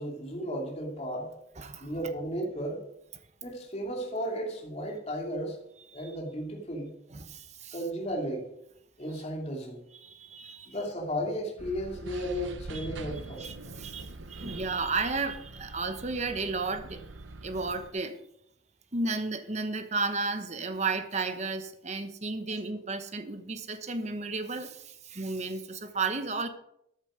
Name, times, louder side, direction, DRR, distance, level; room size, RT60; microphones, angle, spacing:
voice 1, 0.0-1.3 1.8-2.8 3.4-5.6 5.9-6.9 7.7-8.5 9.0-9.8 10.7-13.5, equal, 35° left, -1 dB, 2.7 m, -34 dB
voice 2, 1.6-1.9 5.9-6.1 7.1-7.7 10.0-10.7 12.7-12.9 13.4-17.0 17.4-18.2 18.9-26.5, right 3 dB, 35° right, 8 dB, 1.1 m, -33 dB
sound 1, 11.6-17.9, right 2 dB, 75° right, 0.9 m, -44 dB
13.5 x 8.2 x 5.1 m, 0.78 s
head